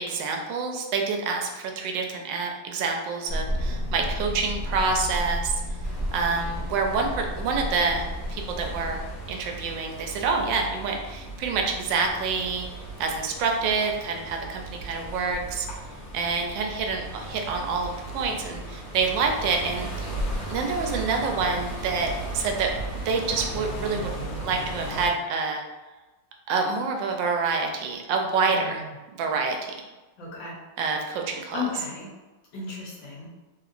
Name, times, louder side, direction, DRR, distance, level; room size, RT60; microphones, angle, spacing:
voice 1, 0.0-5.5 6.1-9.0 9.3-12.7 13.0-15.7 16.1-20.1 20.5-22.7 23.1-25.6 26.5-28.8 29.2-29.7 30.8-31.6, right 4 dB, 85° right, 2 dB, 1.3 m, -27 dB
sound 1, 3.3-9.2, equal, 55° right, 0.6 m, -32 dB
sound 2, 5.8-25.1, right 2 dB, 60° left, 1.2 m, -36 dB
voice 2, 28.4-28.8 30.2-30.5 31.5-32.1 32.5-33.3, left 5 dB, 85° left, -5 dB, 1.7 m, -34 dB
3.5 x 2.8 x 2.5 m, 1.2 s
omnidirectional pair, 2.0 m